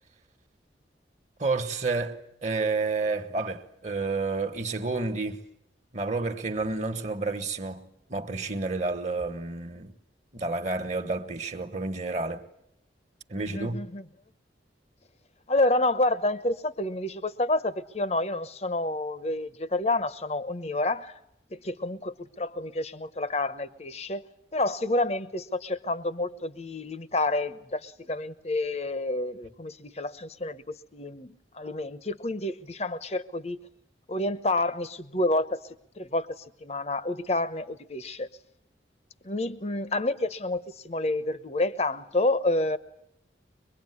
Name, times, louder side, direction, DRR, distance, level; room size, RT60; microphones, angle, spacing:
voice 1, 1.4-5.4 5.9-9.9 10.3-12.4 13.3-13.8, right 3 dB, 40° right, 1.5 m, -30 dB
voice 2, 13.3-14.0 15.5-21.1 21.5-24.2 24.5-33.6 34.1-35.6 36.0-38.3 39.2-42.8, left 2 dB, 35° left, 0.9 m, -29 dB
24.0 x 22.5 x 9.7 m
head